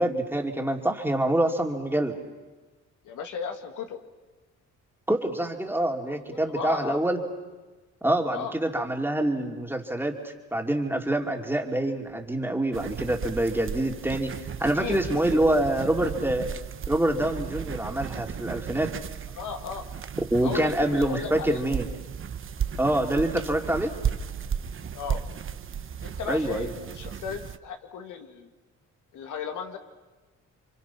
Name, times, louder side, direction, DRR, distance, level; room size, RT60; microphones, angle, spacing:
voice 1, 0.0-2.2 5.1-7.2 8.0-16.5 16.9-18.9 20.3-21.9 22.8-23.9 26.3-26.7, right 1 dB, 5° right, 2 dB, 2.7 m, -26 dB
voice 2, 3.0-4.0 6.1-7.0 8.3-8.5 14.7-15.0 15.3-15.6 19.4-19.9 20.4-21.6 24.9-25.2 26.0-28.5 29.1-29.8, left 6 dB, 80° left, 5 dB, 2.1 m, -35 dB
sound 1, 12.7-27.6, right 8 dB, 45° right, 1.0 m, -35 dB
29.0 x 25.0 x 5.9 m, 1.2 s
cardioid pair, 90°, 30 cm